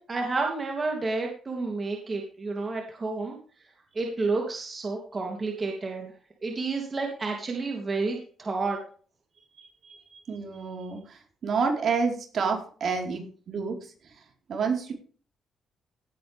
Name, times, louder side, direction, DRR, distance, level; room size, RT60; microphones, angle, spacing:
voice 1, 0.1-3.4 3.9-6.1 6.4-8.8, right 3 dB, 30° right, 1 dB, 3.0 m, -30 dB
voice 2, 9.5-14.9, right 5 dB, 55° right, 1 dB, 4.5 m, -30 dB
17.5 x 8.8 x 3.6 m, 0.43 s
cardioid pair, 90°, 0 cm